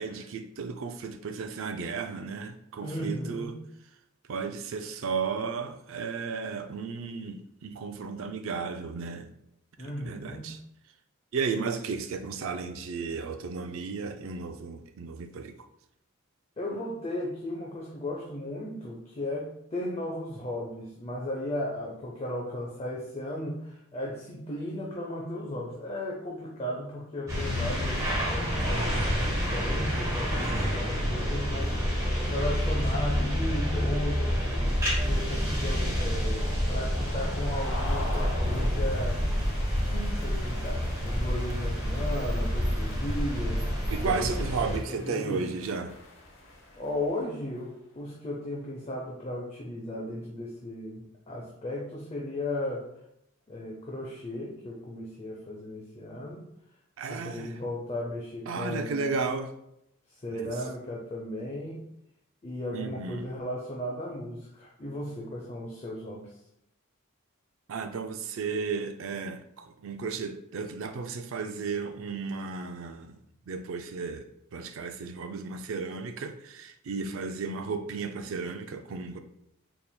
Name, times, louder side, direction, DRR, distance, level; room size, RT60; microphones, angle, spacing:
voice 1, 0.0-3.6 4.3-9.3 9.8-10.6 11.3-15.6 43.9-46.0 57.0-57.5 58.5-59.5 60.3-60.5 62.7-63.2 67.7-73.2 73.5-74.3 74.5-79.2, right 5 dB, 65° right, 0.4 m, -34 dB
voice 2, 2.8-3.6 9.8-10.5 16.6-39.2 39.9-45.5 46.8-52.9 53.5-56.5 57.1-59.1 60.1-61.8 62.4-66.4, left 1 dB, 30° left, 0.5 m, -36 dB
sound 1, 27.3-44.8, equal, 15° right, 1.0 m, -28 dB
sound 2, 32.2-47.8, left 2 dB, 60° left, 0.8 m, -45 dB
4.4 x 3.5 x 2.2 m
head